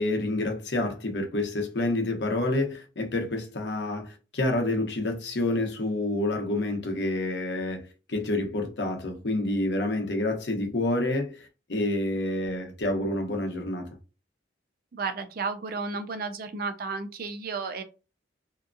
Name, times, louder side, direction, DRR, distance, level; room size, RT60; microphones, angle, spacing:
voice 1, 0.0-13.9, left 2 dB, 75° left, 0.8 m, -28 dB
voice 2, 14.9-17.8, right 4 dB, 55° right, 0.4 m, -33 dB
2.7 x 2.3 x 2.5 m
head